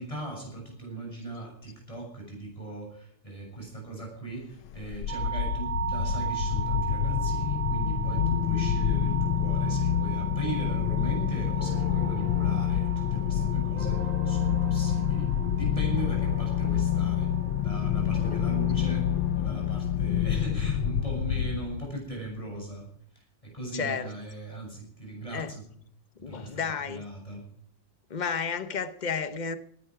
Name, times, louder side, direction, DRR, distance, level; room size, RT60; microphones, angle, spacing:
voice 1, 0.0-17.3 17.6-22.9 23.2-25.6 26.2-26.6 26.9-27.5, right 2 dB, 15° left, 0 dB, 7.4 m, -38 dB
sound 1, 4.7-22.1, left 10 dB, 85° left, 1.7 m, -27 dB
sound 2, 5.1-19.1, right 9 dB, 60° right, 1.4 m, -38 dB
sound 3, 11.6-20.3, left 1 dB, 45° left, 6.1 m, -46 dB
voice 2, 23.7-24.1 25.3-25.5 26.2-27.0 28.1-29.5, left 6 dB, 70° left, 11 dB, 0.4 m, -32 dB
19.0 x 11.5 x 4.8 m, 0.67 s
omnidirectional pair, 2.2 m